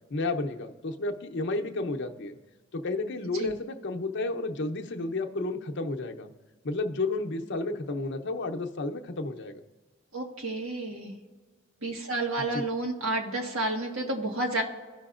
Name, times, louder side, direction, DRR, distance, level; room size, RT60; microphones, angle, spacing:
voice 1, 0.1-2.4 2.7-6.3 6.6-9.6 12.4-12.6, left 2 dB, 60° left, 4 dB, 0.7 m, -32 dB
voice 2, 10.1-11.1 11.8-14.6, right 2 dB, 75° right, 2 dB, 1.4 m, -30 dB
16.0 x 5.8 x 2.5 m, 1.4 s
head